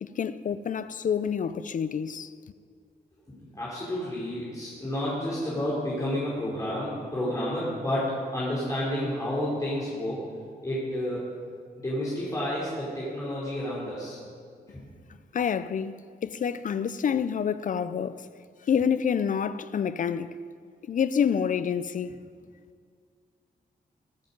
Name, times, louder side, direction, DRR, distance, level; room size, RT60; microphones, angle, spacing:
voice 1, 0.0-2.3 15.3-18.3 18.6-20.3 20.9-22.2, left 7 dB, 50° left, 0.4 m, -28 dB
voice 2, 3.3-10.2 10.6-11.2 11.8-14.2 14.7-14.8, left 1 dB, 20° left, 3.1 m, -30 dB
21.0 x 7.8 x 5.2 m
wide cardioid pair, 145°, 17 cm